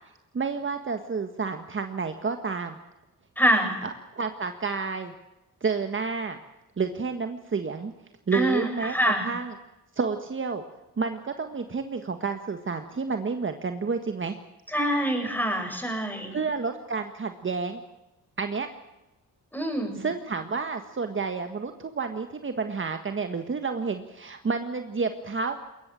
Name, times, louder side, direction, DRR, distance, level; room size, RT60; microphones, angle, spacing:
voice 1, 0.3-2.8 3.8-5.1 5.6-6.4 6.8-7.9 8.3-9.5 9.9-10.6 11.0-14.3 16.3-17.8 18.4-18.7 19.9-25.7, right 5 dB, 35° right, 6 dB, 1.7 m, -30 dB
voice 2, 3.4-3.8 8.3-9.3 14.7-16.3 19.5-20.0, equal, 5° left, 3 dB, 7.7 m, -25 dB
22.0 x 19.5 x 7.7 m, 1.0 s
cardioid pair, 85°, 34 cm